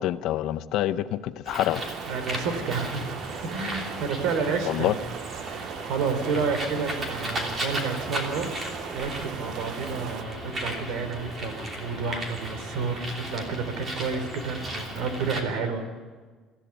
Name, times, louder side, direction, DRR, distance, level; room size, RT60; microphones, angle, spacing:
voice 1, 0.0-1.8 4.7-4.9, left 13 dB, 55° left, 12 dB, 0.7 m, -26 dB
Bird, 1.5-15.4, right 1 dB, 20° right, 3.0 m, -36 dB
sound 1, 1.8-10.2, right 10 dB, 50° right, 0.6 m, -39 dB
voice 2, 2.1-5.0 5.5-15.9, right 5 dB, 70° right, 9 dB, 3.1 m, -30 dB
25.5 x 15.0 x 7.0 m, 1.5 s
cardioid pair, 180°, 0 cm